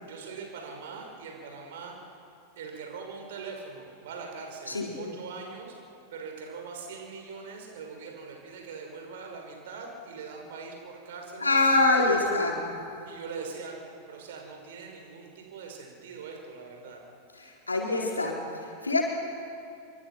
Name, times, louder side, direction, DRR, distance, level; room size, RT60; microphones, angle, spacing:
voice 1, 0.0-2.0 2.6-5.8 6.1-11.4 11.9-12.3 13.1-17.0, right 4 dB, 55° right, 2 dB, 5.4 m, -42 dB
voice 2, 11.4-12.6 17.4-19.1, left 2 dB, 80° left, -1 dB, 4.7 m, -25 dB
26.5 x 25.5 x 6.0 m, 2.5 s
figure-of-eight pair, 90°, 0 cm